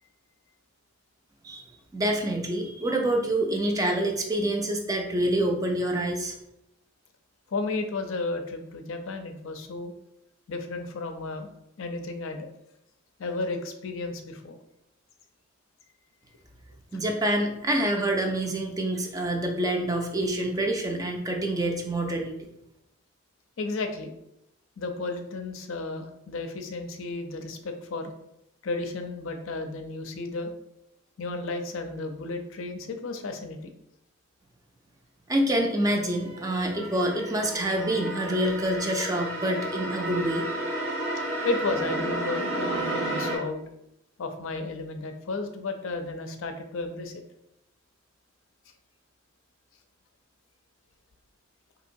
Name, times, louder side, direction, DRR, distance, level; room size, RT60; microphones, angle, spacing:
voice 1, 1.9-6.4 16.9-22.5 35.3-40.5, right 1 dB, 15° right, 2 dB, 0.4 m, -27 dB
voice 2, 7.5-9.9 10.5-11.5 11.8-12.5 13.2-14.6 23.6-24.1 24.8-28.1 28.6-30.5 31.2-33.7 41.4-43.6 44.2-47.2, left 3 dB, 70° left, 6 dB, 0.4 m, -33 dB
sound 1, 35.7-43.4, right 1 dB, 80° right, 1.3 m, -32 dB
3.8 x 2.8 x 2.6 m, 0.83 s
head